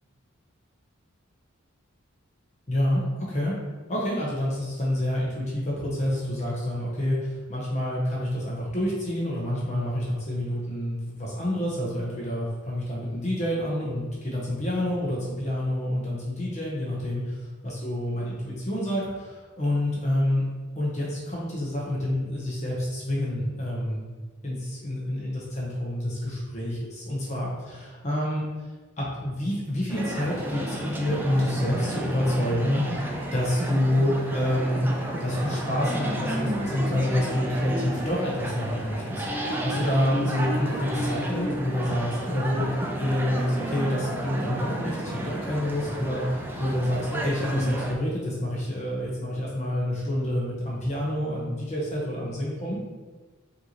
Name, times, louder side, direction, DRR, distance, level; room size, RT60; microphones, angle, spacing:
voice 1, 2.7-3.6 3.9-17.3 17.6-20.4 20.7-24.0 24.4-28.7 29.0-34.9 35.2-52.8, left 1 dB, 35° left, -5 dB, 0.8 m, -28 dB
sound 1, 29.9-47.9, right 1 dB, 10° right, 0.3 m, -32 dB
5.2 x 2.7 x 2.9 m, 1.3 s
head